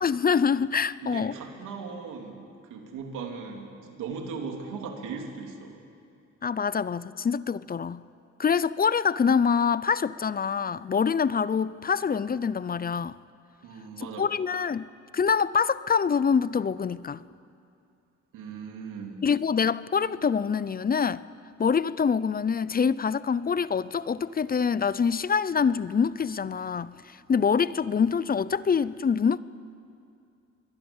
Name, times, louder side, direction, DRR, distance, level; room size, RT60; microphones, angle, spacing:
voice 1, 0.0-1.3 6.4-8.0 8.4-13.2 14.2-14.9 15.1-17.2 19.2-21.2 21.6-29.4, left 6 dB, 30° left, 0.6 m, -25 dB
voice 2, 1.0-5.8 13.6-14.3 18.3-19.2, right 5 dB, 85° right, 3.4 m, -38 dB
27.0 x 22.0 x 7.3 m
cardioid pair, 90°, 30 cm